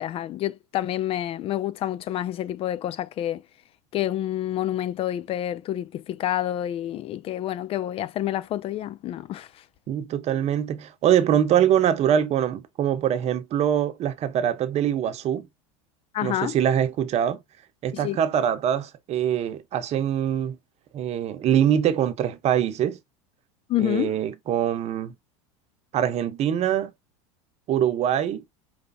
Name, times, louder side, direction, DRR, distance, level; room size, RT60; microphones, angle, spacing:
voice 1, 0.0-3.4 3.9-9.5 16.1-16.6 17.9-18.2 23.7-24.2, left 12 dB, 35° left, 0.4 m, -28 dB
voice 2, 9.9-15.5 16.2-17.4 17.8-20.6 20.9-23.0 23.8-25.1 25.9-26.9 27.7-28.4, right 10 dB, 40° right, 0.9 m, -23 dB
5.1 x 3.3 x 2.6 m
hypercardioid pair, 95°, 17 cm